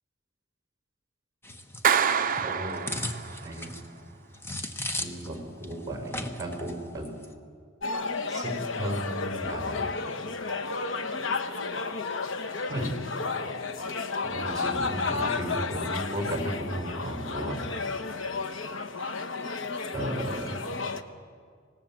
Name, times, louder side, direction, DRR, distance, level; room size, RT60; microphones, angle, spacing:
sound 1, 1.4-5.4 5.6-5.7 6.1-6.7 7.0-7.3, left 1 dB, 15° left, 1.2 m, -36 dB
Clapping, 1.8-3.5, right 7 dB, 45° right, 0.7 m, -26 dB
voice 1, 2.4-3.0 3.4-3.7 5.0-7.1 8.3-10.0 12.7-12.9 14.2-17.7 19.9-20.6, right 1 dB, 15° right, 3 dB, 5.0 m, -34 dB
sound 2, 7.8-21.0, left 4 dB, 90° left, 1.1 m, -32 dB
25.5 x 18.5 x 7.5 m, 2.1 s
head